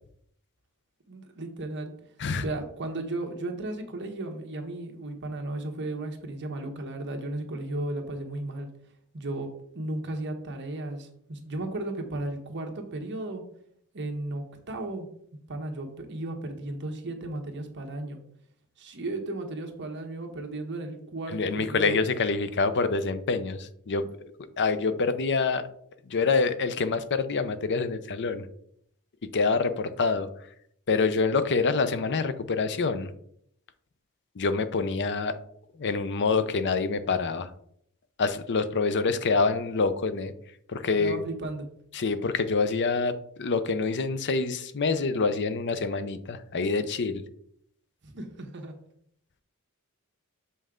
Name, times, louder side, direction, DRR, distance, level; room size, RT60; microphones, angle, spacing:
voice 1, 1.1-1.9 2.4-8.7 9.1-13.4 13.9-15.1 15.5-18.2 18.8-22.0 41.0-41.7 48.0-48.8, right 2 dB, 55° right, 4 dB, 1.2 m, -35 dB
voice 2, 21.3-24.1 24.6-25.6 26.1-28.5 29.3-30.3 30.9-33.1 34.4-35.4 35.8-37.5 38.2-40.3 40.7-41.2 41.9-47.2, left 4 dB, 55° left, 11 dB, 0.6 m, -26 dB
6.7 x 5.4 x 3.7 m, 0.69 s
head